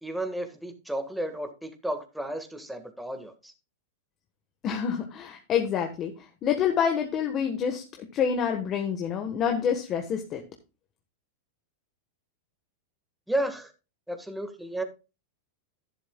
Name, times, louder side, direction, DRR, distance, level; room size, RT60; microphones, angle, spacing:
voice 1, 0.0-3.5 13.3-13.7 14.1-14.8, right 1 dB, 5° right, 1.6 m, -33 dB
voice 2, 4.6-10.4, left 7 dB, 35° left, 1.3 m, -27 dB
11.0 x 11.0 x 2.3 m
hypercardioid pair, 125°, 0 cm